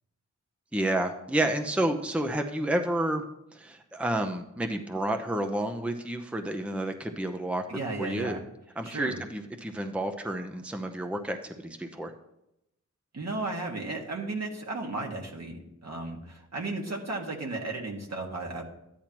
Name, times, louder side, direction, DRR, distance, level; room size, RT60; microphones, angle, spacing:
voice 1, 0.7-3.2 3.5-8.4 8.8-12.1, right 1 dB, 5° right, 5 dB, 0.8 m, -30 dB
voice 2, 7.7-8.4 8.8-9.2 13.1-18.6, right 2 dB, 60° right, 0 dB, 1.9 m, -34 dB
13.0 x 10.0 x 3.0 m, 0.85 s
wide cardioid pair, 65°, 30 cm